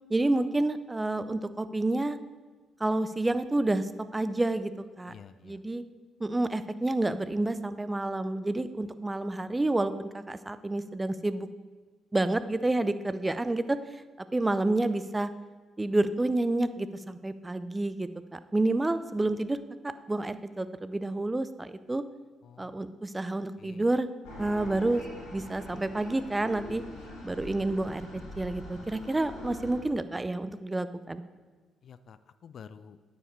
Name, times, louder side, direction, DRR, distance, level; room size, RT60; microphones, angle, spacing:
voice 1, 0.1-2.2 2.8-4.7 5.0-5.1 5.4-5.8 6.2-11.5 12.1-13.8 14.3-15.3 15.8-19.6 20.1-22.0 22.6-24.1 24.4-25.0 25.3-26.8 27.2-31.2, right 2 dB, 20° right, 13 dB, 0.6 m, -29 dB
voice 2, 5.1-5.6 22.4-22.9 23.6-23.9 31.8-33.0, left 7 dB, 55° left, 13 dB, 0.4 m, -50 dB
sound 1, 24.2-29.8, left 1 dB, 75° left, 2.5 m, -43 dB
9.8 x 9.5 x 3.2 m, 1.4 s
figure-of-eight pair, 45°, 0 cm